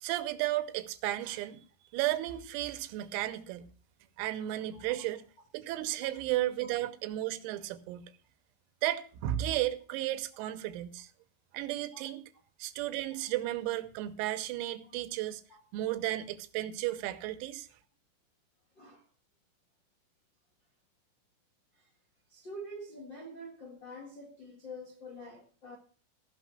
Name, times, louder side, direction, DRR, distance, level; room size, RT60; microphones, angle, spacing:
voice 1, 0.0-1.7 1.9-3.7 4.2-5.2 5.5-8.1 8.8-11.1 11.5-12.2 12.6-15.4 15.7-17.7, right 14 dB, 85° right, 3.6 m, -34 dB
voice 2, 4.7-5.0 11.9-12.0 13.1-13.2 14.8-15.0 15.5-16.2 18.7-19.0 21.7-21.9 22.3-25.8, equal, 80° left, 1.0 m, -47 dB
15.5 x 6.2 x 6.2 m
omnidirectional pair, 6.0 m